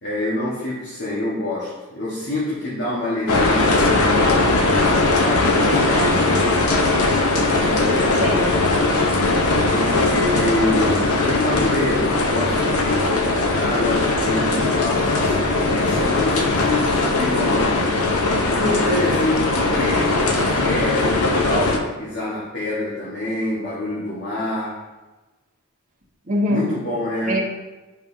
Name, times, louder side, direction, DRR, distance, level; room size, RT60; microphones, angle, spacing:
voice 1, 0.0-4.6 5.1-5.5 7.4-8.6 9.7-17.8 18.4-24.8 26.5-27.3, left 1 dB, 50° left, -7 dB, 1.4 m, -26 dB
sound 1, 3.3-21.8, left 2 dB, 80° left, 0.8 m, -19 dB
voice 2, 5.8-6.4 8.2-8.6 26.3-26.8 27.3-27.4, equal, 35° right, -4 dB, 1.3 m, -24 dB
11.0 x 5.3 x 2.7 m, 1.2 s
head